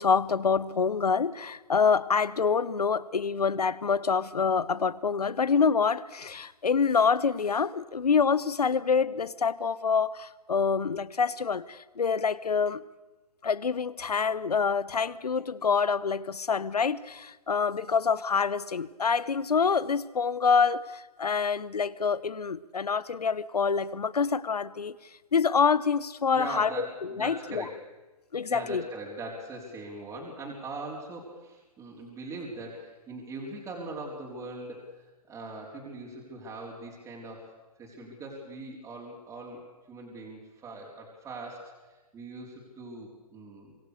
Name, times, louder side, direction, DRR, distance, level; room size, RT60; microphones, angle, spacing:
voice 1, 0.0-12.8 13.4-24.9 25.3-27.6 28.3-28.8, left 5 dB, 75° left, 1.0 m, -26 dB
voice 2, 26.3-27.8 28.5-37.5 37.8-39.6 39.9-43.8, right 2 dB, 15° right, 4.4 m, -41 dB
25.5 x 22.5 x 6.8 m
figure-of-eight pair, 130°, 20 cm